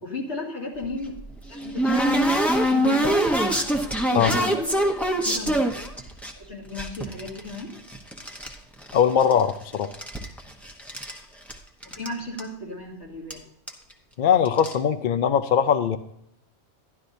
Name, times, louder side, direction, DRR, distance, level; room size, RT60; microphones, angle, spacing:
voice 1, 0.0-1.2 1.5-3.2 4.1-4.7 5.2-5.7 6.4-7.7 11.9-13.4, left 2 dB, 75° left, -4 dB, 2.7 m, -34 dB
sound 1, 0.8-6.3 6.8-8.5 8.8-9.6 9.8-11.2 11.5-11.6 11.8-12.1 12.4-12.5 13.3-13.4 13.7-13.9 14.5-14.7, right 1 dB, ahead, 0.9 m, -24 dB
voice 2, 8.9-9.9 14.2-16.0, left 8 dB, 55° left, 10 dB, 0.6 m, -21 dB
12.0 x 11.5 x 2.7 m, 0.74 s
omnidirectional pair, 1.2 m